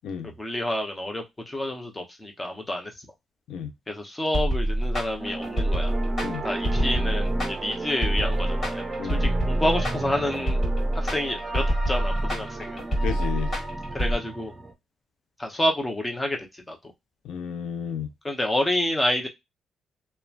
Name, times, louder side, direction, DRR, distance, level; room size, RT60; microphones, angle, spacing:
voice 1, 0.2-2.9 3.9-5.9 6.4-10.6 10.9-12.8 13.9-14.5 15.4-16.8 18.2-19.3, left 1 dB, 15° left, 0.8 m, -29 dB
sound 1, 4.3-14.2, right 1 dB, 35° left, 1.6 m, -26 dB
sound 2, 5.2-14.7, right 2 dB, 25° right, 0.6 m, -34 dB
voice 2, 13.0-13.5 17.2-18.1, left 8 dB, 80° left, 0.4 m, -32 dB
2.9 x 2.2 x 2.4 m
cardioid pair, 90°, 0 cm